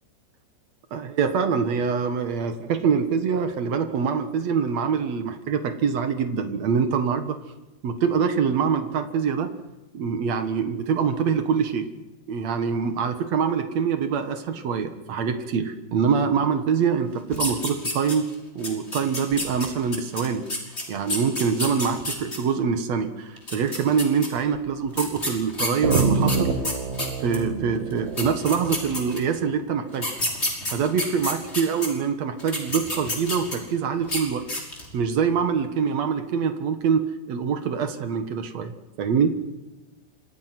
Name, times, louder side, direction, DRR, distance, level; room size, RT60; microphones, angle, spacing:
voice 1, 0.9-7.4 7.8-9.6 9.9-11.9 12.3-18.3 18.5-20.5 20.9-26.5 27.2-30.1 30.7-34.4 34.9-39.3, right 6 dB, 65° right, 8 dB, 1.7 m, -24 dB
sound 1, 17.3-18.3 18.6-22.4 23.4-24.3 25.0-27.4 27.9-28.0 28.2-29.4 29.9-31.9 32.4-33.7 34.0-34.2 34.5-34.9, left 1 dB, 15° left, 5.4 m, -29 dB
sound 2, 25.8-29.4, right 4 dB, 45° right, 2.8 m, -26 dB
29.5 x 26.5 x 6.1 m, 1.1 s
omnidirectional pair, 5.4 m